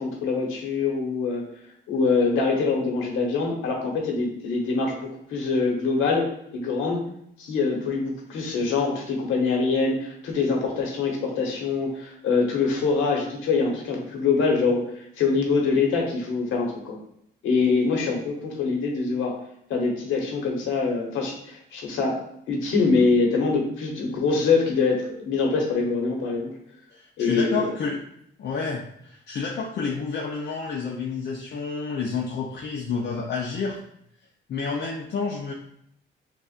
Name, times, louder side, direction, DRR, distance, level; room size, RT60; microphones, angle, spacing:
voice 1, 0.0-1.5 1.9-7.1 7.4-17.0 17.4-19.4 19.7-22.2 22.5-26.5 27.2-27.7, left 4 dB, 90° left, 0 dB, 1.1 m, -24 dB
voice 2, 26.9-28.0 28.4-33.8 34.5-35.5, left 5 dB, 60° left, -2 dB, 0.6 m, -29 dB
6.8 x 2.4 x 2.5 m, 0.73 s
cardioid pair, 90°, 20 cm